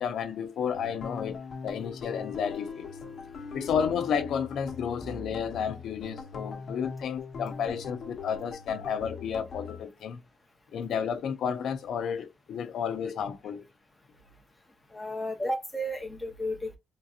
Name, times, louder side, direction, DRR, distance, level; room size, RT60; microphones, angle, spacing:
voice 1, 0.0-1.4 1.6-2.9 3.5-10.2 10.7-13.7, left 7 dB, 85° left, 0.6 m, -32 dB
sound 1, 0.7-9.8, left 5 dB, 50° left, 0.8 m, -41 dB
voice 2, 14.9-16.8, equal, 5° left, 0.8 m, -33 dB
3.7 x 2.7 x 2.4 m
wide cardioid pair, 165°, 0 cm